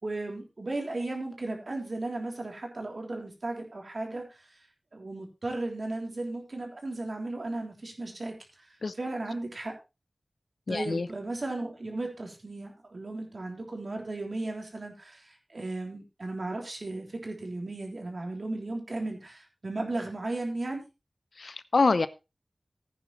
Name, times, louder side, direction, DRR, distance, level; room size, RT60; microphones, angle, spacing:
voice 1, 0.0-4.6 4.9-8.7 8.9-9.8 10.7-20.8, right 2 dB, 60° right, 3.4 m, -35 dB
voice 2, 10.7-11.1 21.4-22.1, left 3 dB, 80° left, 0.7 m, -25 dB
15.5 x 9.3 x 3.2 m
wide cardioid pair, 80°, 0 cm